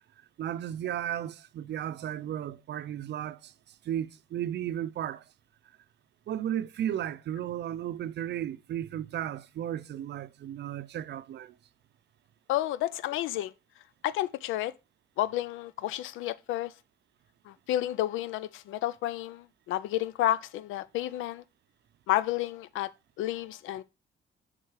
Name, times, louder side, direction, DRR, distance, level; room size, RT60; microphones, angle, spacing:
voice 1, 0.4-3.5 3.8-5.2 6.3-11.5, right 11 dB, 60° right, 0.5 m, -34 dB
voice 2, 12.5-13.5 14.0-14.7 15.2-16.7 17.5-21.4 22.1-22.9 23.2-23.8, left 14 dB, 90° left, 0.4 m, -31 dB
6.3 x 3.8 x 4.6 m
cardioid pair, 90°, 20 cm